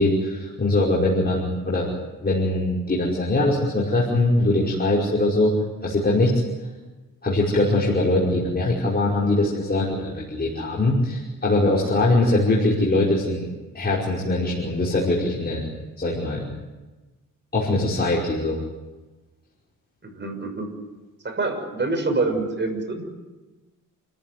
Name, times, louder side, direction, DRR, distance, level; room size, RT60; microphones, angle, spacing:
voice 1, 0.0-1.9 2.2-5.6 5.8-6.3 7.2-13.5 13.7-15.6 16.0-16.4 17.5-18.6, left 2 dB, 30° left, -5 dB, 5.5 m, -22 dB
voice 2, 20.0-20.7 21.2-23.1, right 3 dB, 30° right, 5 dB, 6.3 m, -26 dB
29.0 x 15.0 x 9.7 m, 1.2 s
cardioid pair, 90°, 34 cm